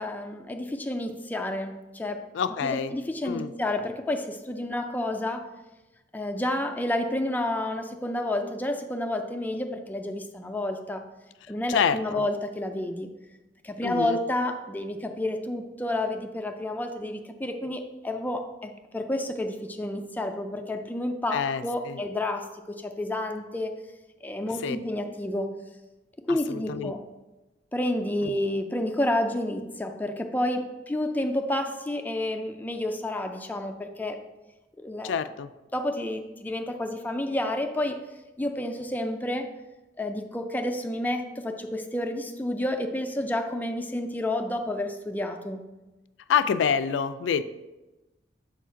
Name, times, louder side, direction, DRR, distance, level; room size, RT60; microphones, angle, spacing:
voice 1, 0.0-2.2 2.6-5.5 6.1-11.0 11.5-13.1 13.6-23.7 24.2-25.5 26.3-27.0 27.7-34.2 34.8-35.1 35.7-38.0 38.4-39.5 40.0-45.6, left 1 dB, 10° left, 4 dB, 0.4 m, -30 dB
voice 2, 2.3-2.9 3.3-3.5 11.7-12.3 13.8-14.2 21.3-22.0 24.6-24.8 26.5-26.9 28.2-28.3 35.0-35.5 46.3-47.4, left 7 dB, 85° left, 12 dB, 0.3 m, -27 dB
7.1 x 2.5 x 5.6 m, 1.1 s
head